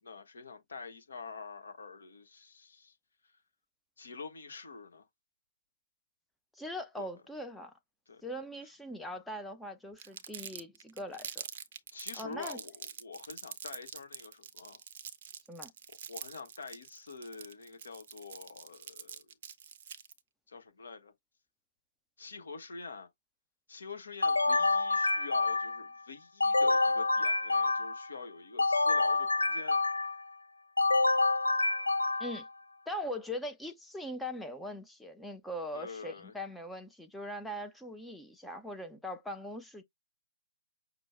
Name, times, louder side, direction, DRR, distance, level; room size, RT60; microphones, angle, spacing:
voice 1, 0.0-2.9 4.0-5.1 7.0-7.1 8.1-8.2 11.9-14.8 16.1-19.3 20.5-21.1 22.2-23.1 23.7-29.8 35.7-36.3, left 4 dB, 55° left, 1.3 m, -46 dB
voice 2, 6.6-7.7 8.2-11.4 12.1-12.6 15.5-15.7 32.2-32.5 32.9-39.8, left 1 dB, ahead, 0.6 m, -41 dB
Crumpling crinkling, 10.0-20.2, right 8 dB, 35° right, 0.6 m, -45 dB
sound 1, 24.2-25.9 26.4-28.1 28.6-30.2 30.8-32.5, left 3 dB, 70° left, 0.5 m, -27 dB
6.0 x 2.2 x 3.5 m
figure-of-eight pair, 135°, 0 cm